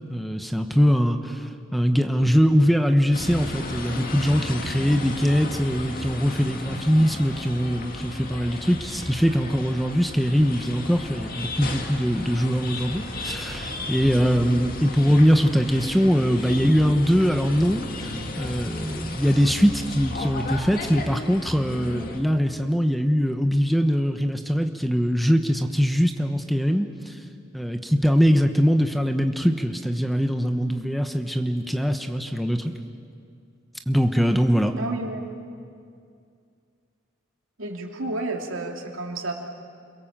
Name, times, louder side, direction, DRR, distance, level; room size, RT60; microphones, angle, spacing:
voice 1, 0.0-1.4 1.7-27.2 27.5-32.7 33.9-34.7, equal, ahead, 6 dB, 1.0 m, -22 dB
sound 1, 3.1-22.2, left 2 dB, 45° left, 2.0 m, -34 dB
voice 2, 34.7-35.2 37.6-39.3, right 2 dB, 85° right, 1 dB, 2.8 m, -30 dB
29.5 x 22.5 x 7.5 m, 2.3 s
head